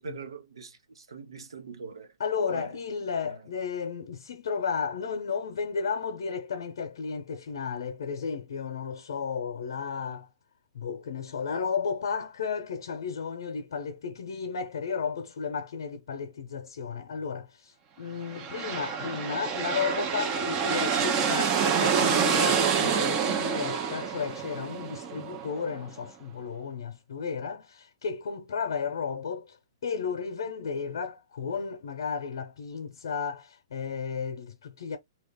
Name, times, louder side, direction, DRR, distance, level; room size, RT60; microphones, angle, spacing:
voice 1, 0.0-2.1 2.5-2.8 3.2-3.4, right 4 dB, 90° right, 1.0 m, -42 dB
voice 2, 2.2-10.3 10.7-29.6 29.8-35.0, left 6 dB, 70° left, 0.7 m, -33 dB
sound 1, 18.2-25.9, right 7 dB, 30° right, 0.7 m, -27 dB
2.9 x 2.4 x 3.4 m
hypercardioid pair, 140°, 3 cm